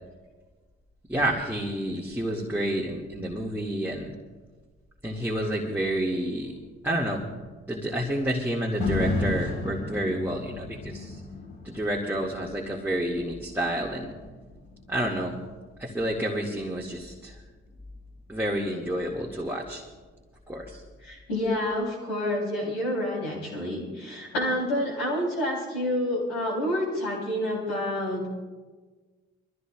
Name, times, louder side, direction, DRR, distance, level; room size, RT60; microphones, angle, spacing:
voice 1, 1.1-4.1 5.0-6.5 6.8-7.2 7.7-11.2 11.6-14.1 14.9-15.4 15.8-17.4 18.3-19.8 20.5-20.8, right 1 dB, 5° right, -3 dB, 2.1 m, -29 dB
sound 1, 8.8-17.0 17.4-17.5, left 2 dB, 55° left, 4.3 m, -34 dB
voice 2, 21.0-28.3, left 1 dB, 85° left, -3 dB, 3.7 m, -28 dB
24.5 x 14.5 x 2.4 m, 1.4 s
hypercardioid pair, 45°, 30 cm